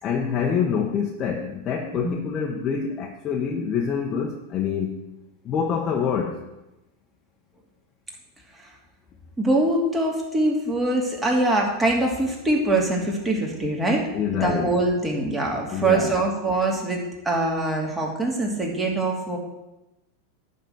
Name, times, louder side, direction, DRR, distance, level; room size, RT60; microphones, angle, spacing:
voice 1, 0.0-4.9 5.4-6.4 14.1-14.7 15.7-16.1, left 7 dB, 35° left, 0 dB, 1.2 m, -26 dB
voice 2, 9.4-14.1 14.4-17.0 17.2-19.4, right 2 dB, 15° right, -1 dB, 2.6 m, -23 dB
11.0 x 4.1 x 7.8 m, 0.97 s
hypercardioid pair, 100°, 0 cm